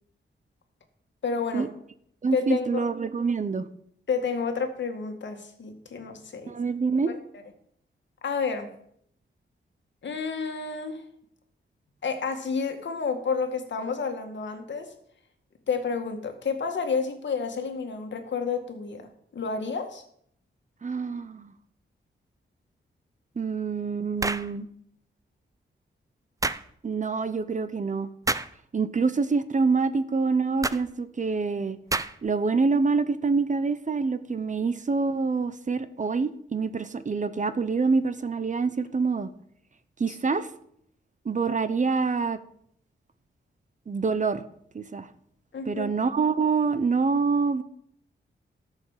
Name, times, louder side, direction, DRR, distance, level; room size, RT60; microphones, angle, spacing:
voice 1, 1.2-1.7 2.3-2.9 4.1-6.5 7.1-7.2 8.2-8.8 10.0-11.0 12.0-14.9 15.7-19.1 19.3-20.0 40.1-40.4 45.5-45.9, left 5 dB, 65° left, 5 dB, 2.0 m, -30 dB
voice 2, 2.2-3.7 6.5-7.1 20.8-21.5 23.4-24.7 26.8-28.1 28.7-31.8 32.2-39.3 40.0-40.5 41.2-42.4 43.9-44.4 44.7-45.1 45.7-47.6, right 4 dB, 40° right, 13 dB, 0.9 m, -26 dB
sound 1, 24.2-24.5 26.4-26.7 28.3-28.5 30.6-30.8 31.9-32.3, right 2 dB, 15° right, 0.5 m, -28 dB
12.5 x 6.5 x 7.4 m, 0.68 s
cardioid pair, 90°, 20 cm